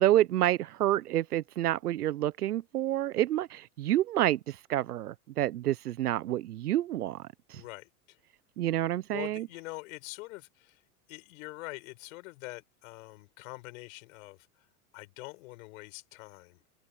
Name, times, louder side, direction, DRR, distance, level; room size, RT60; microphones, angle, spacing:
voice 1, 0.0-7.6 8.6-9.5, right 13 dB, 75° right, 1.1 m, -28 dB
voice 2, 7.5-8.2 9.1-10.8 11.1-14.4 14.9-16.6, left 22 dB, 60° left, 5.0 m, -44 dB
hypercardioid pair, 95°, 46 cm